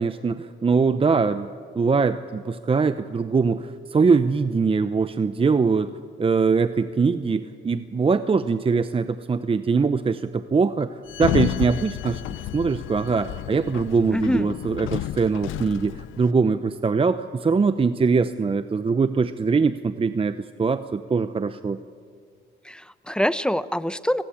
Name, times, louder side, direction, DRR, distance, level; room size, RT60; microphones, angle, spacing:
voice 1, 0.0-1.5 1.7-5.9 6.2-12.2 12.5-21.8, right 4 dB, 25° right, 11 dB, 0.8 m, -22 dB
Sliding door, 11.1-16.3, left 13 dB, 80° left, 0.6 m, -31 dB
voice 2, 14.1-14.5 22.6-24.2, equal, 5° left, 14 dB, 0.9 m, -25 dB
29.0 x 20.0 x 8.7 m, 2.1 s
cardioid pair, 90°, 20 cm